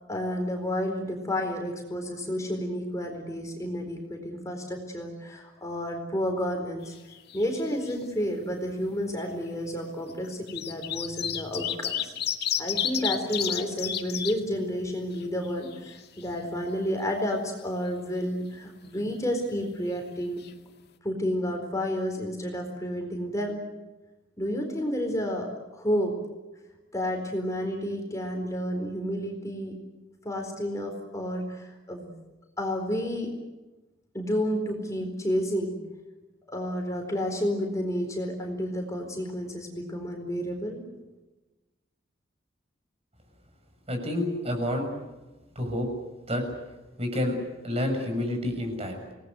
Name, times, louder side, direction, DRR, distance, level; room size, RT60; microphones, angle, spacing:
voice 1, 0.1-6.9 7.3-12.1 12.6-20.4 21.0-23.6 24.4-26.1 26.9-29.7 30.2-32.1 32.6-33.3 34.1-35.8 36.5-40.8, equal, 20° left, 3 dB, 4.3 m, -30 dB
sound 1, 6.9-7.6 7.9-8.0 9.1-9.2 10.1-14.3 14.8-14.9 15.2-16.2 20.1-20.2 20.4-20.5, left 9 dB, 60° left, 2.1 m, -31 dB
voice 2, 43.9-44.9 45.5-45.9 46.3-46.4 47.0-47.4 47.6-49.0, left 1 dB, 35° right, 4 dB, 6.7 m, -28 dB
28.5 x 19.5 x 8.2 m, 1.1 s
head